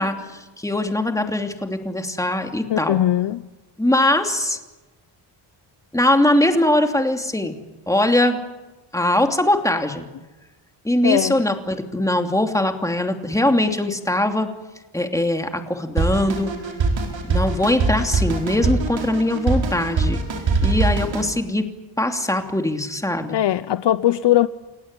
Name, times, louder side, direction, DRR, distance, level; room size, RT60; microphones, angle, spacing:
voice 1, 0.0-3.0 3.8-4.6 5.9-7.6 7.9-8.4 8.9-10.1 10.8-14.5 14.9-16.5 17.3-20.2 20.6-21.6 22.0-23.4, left 1 dB, 5° left, 2.9 m, -21 dB
voice 2, 2.7-3.4 11.0-11.3 23.3-24.5, left 12 dB, 60° left, 0.8 m, -19 dB
Drum kit, 16.0-21.3, right 3 dB, 65° right, 4.8 m, -22 dB
30.0 x 16.5 x 9.8 m
cardioid pair, 105°, 48 cm